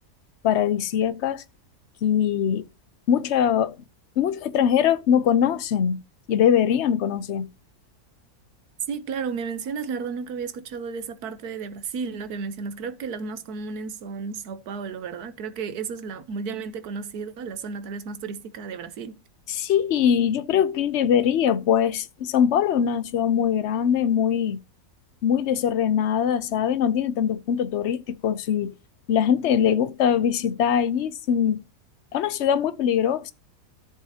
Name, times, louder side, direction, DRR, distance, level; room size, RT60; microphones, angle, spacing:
voice 1, 0.4-1.4 2.0-2.7 3.1-3.7 4.2-6.0 6.3-7.5 19.5-24.6 25.2-28.7 29.1-31.6 32.1-33.3, left 8 dB, 55° left, 0.9 m, -22 dB
voice 2, 8.9-19.2, right 5 dB, 85° right, 1.4 m, -33 dB
13.5 x 7.4 x 2.8 m
omnidirectional pair, 1.6 m